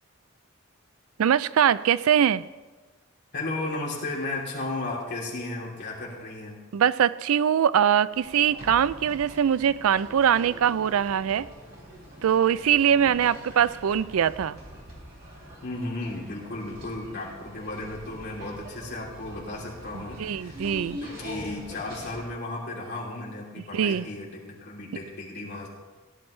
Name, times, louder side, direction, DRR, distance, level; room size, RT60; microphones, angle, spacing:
voice 1, 1.2-2.4 6.7-11.5 12.2-14.6 19.9-21.0 23.7-24.1, right 8 dB, 85° right, 17 dB, 0.4 m, -22 dB
voice 2, 3.3-6.6 12.9-13.4 15.6-20.7 21.1-25.7, left 2 dB, 50° left, -4 dB, 3.2 m, -34 dB
sound 1, 8.1-22.2, equal, 50° right, 4.2 m, -44 dB
17.5 x 11.0 x 3.2 m, 1.3 s
head